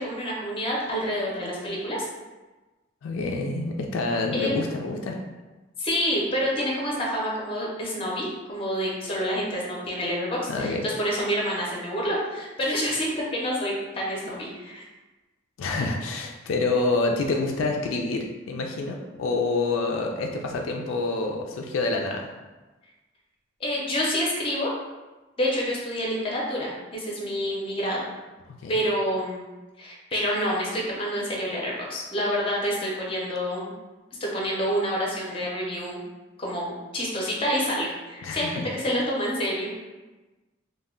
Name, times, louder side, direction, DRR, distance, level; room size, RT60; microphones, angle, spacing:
voice 1, 0.0-2.1 4.3-4.5 5.8-14.9 23.6-24.7 25.4-28.1 28.7-29.4 29.8-33.7 34.2-36.0 36.4-39.7, equal, 25° left, -3 dB, 0.5 m, -28 dB
voice 2, 3.0-5.2 10.5-10.9 15.6-22.3 28.6-28.8 38.2-38.6, left 3 dB, 80° left, 1 dB, 0.3 m, -27 dB
2.1 x 2.1 x 3.5 m, 1.2 s
head